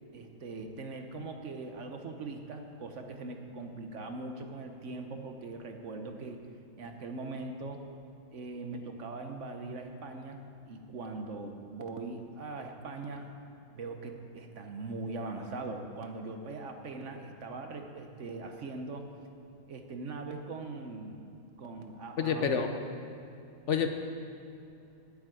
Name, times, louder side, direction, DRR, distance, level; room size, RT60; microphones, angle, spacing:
voice 1, 0.1-6.4 6.8-7.8 8.3-13.3 13.7-19.1 19.7-21.3 21.6-22.7, right 3 dB, 60° right, 5 dB, 1.2 m, -41 dB
voice 2, 22.2-22.7 23.7-23.9, left 7 dB, 60° left, 6 dB, 1.0 m, -27 dB
8.6 x 8.1 x 9.0 m, 2.7 s
omnidirectional pair, 1.5 m